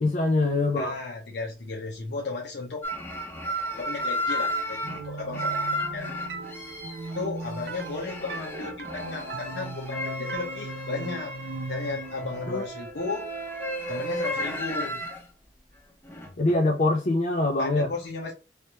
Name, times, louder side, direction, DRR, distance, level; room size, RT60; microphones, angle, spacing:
voice 1, 0.0-1.0 12.5-12.6 16.4-17.9, left 2 dB, 45° left, 0.4 m, -24 dB
voice 2, 0.8-2.8 3.7-6.1 7.1-11.3 11.7-13.2 13.9-15.0 17.6-18.3, left 3 dB, 75° left, 0.9 m, -34 dB
sound 1, 2.8-15.2 16.0-16.5, equal, 15° left, 0.7 m, -34 dB
sound 2, 4.3-13.8, right 3 dB, 65° right, 0.5 m, -38 dB
3.2 x 3.2 x 2.9 m
head